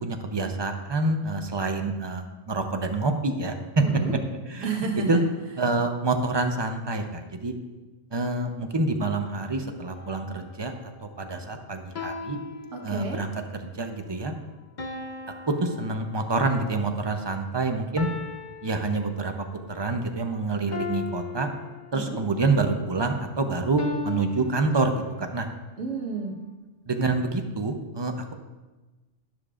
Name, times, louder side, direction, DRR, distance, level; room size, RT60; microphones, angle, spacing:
voice 1, 0.0-3.8 4.5-4.7 5.1-5.2 5.6-7.5 8.1-10.7 11.0-12.4 12.8-14.3 15.5-18.1 18.6-21.5 21.9-25.5 26.9-28.3, right 3 dB, 30° right, 5 dB, 0.6 m, -27 dB
voice 2, 3.8-4.2 4.6-5.2 12.7-13.2 21.9-22.2 25.8-26.3, right 3 dB, 75° right, 2 dB, 1.6 m, -30 dB
sound 1, 10.0-10.4 12.0-13.4 14.8-16.6 18.0-19.6 20.7-22.3 23.8-25.4, left 4 dB, 45° left, 0.8 m, -38 dB
11.5 x 11.5 x 2.5 m, 1.2 s
omnidirectional pair, 1.3 m